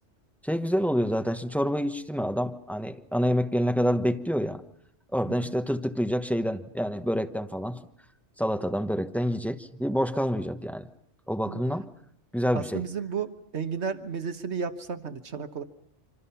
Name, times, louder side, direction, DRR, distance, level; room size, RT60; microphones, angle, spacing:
voice 1, 0.4-4.6 5.1-7.8 8.4-10.9 11.3-11.9 12.3-12.8, equal, ahead, 1.1 m, -27 dB
voice 2, 12.5-15.6, right 6 dB, 70° right, 1.5 m, -33 dB
26.0 x 25.5 x 5.8 m
omnidirectional pair, 1.2 m